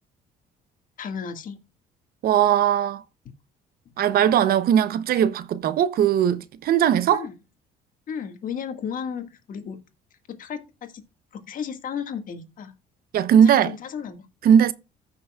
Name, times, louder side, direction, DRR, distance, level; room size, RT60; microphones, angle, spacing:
voice 1, 1.0-1.6 7.1-7.4 8.1-9.8 10.3-11.0 11.3-12.7 13.4-14.3, left 7 dB, 55° left, 1.8 m, -34 dB
voice 2, 2.2-3.0 4.0-7.2 13.1-13.7 14.4-14.7, right 9 dB, 60° right, 0.7 m, -19 dB
14.5 x 6.1 x 2.3 m
cardioid pair, 110°, 17 cm